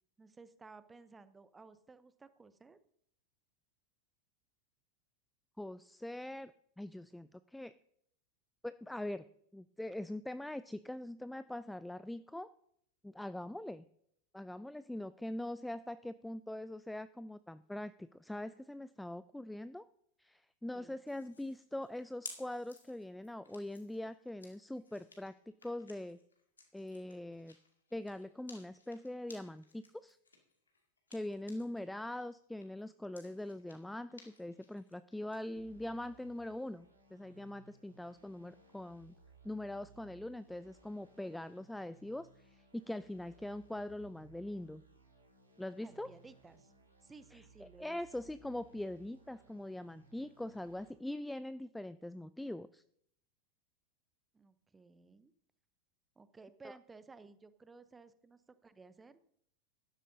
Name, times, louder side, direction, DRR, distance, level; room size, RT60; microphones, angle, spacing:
voice 1, 0.2-2.8 20.7-21.0 45.8-46.7 47.0-48.0 54.3-55.3 56.2-59.2, right 4 dB, 15° right, 14 dB, 0.7 m, -57 dB
voice 2, 5.6-7.7 8.6-9.2 9.5-12.5 13.0-13.9 14.3-19.8 20.2-25.3 25.6-26.2 26.7-27.6 27.9-30.2 31.1-39.1 39.4-44.8 45.6-46.1 47.3-52.8 56.6-56.7, left 1 dB, 5° left, 15 dB, 0.3 m, -43 dB
sound 1, 21.1-31.9 32.2-35.4, left 3 dB, 75° left, 2.4 m, -57 dB
sound 2, 35.5-50.9, right 4 dB, 85° right, 3.5 m, -63 dB
14.5 x 12.0 x 2.8 m, 0.70 s
figure-of-eight pair, 90°, 0 cm